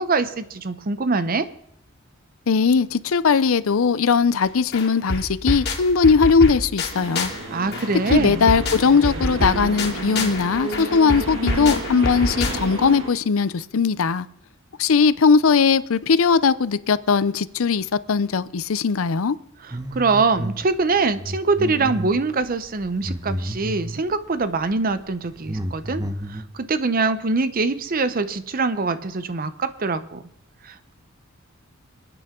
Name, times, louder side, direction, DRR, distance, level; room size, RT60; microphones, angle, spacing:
voice 1, 0.0-1.5 7.5-8.5 19.6-26.0 26.3-30.2 30.6-30.9, right 3 dB, 45° right, 0.7 m, -23 dB
voice 2, 2.5-7.3 8.1-14.3 14.8-19.4, left 5 dB, 80° left, 0.6 m, -19 dB
sound 1, 4.4-4.5 4.7-7.4 7.7-12.9, left 2 dB, 50° left, 2.3 m, -27 dB
sound 2, 6.9-13.1, right 2 dB, 65° right, 2.1 m, -32 dB
sound 3, 19.7-20.6 20.9-24.0 24.6-24.8 25.1-26.4, right 1 dB, 15° right, 0.9 m, -31 dB
27.5 x 9.2 x 3.7 m
head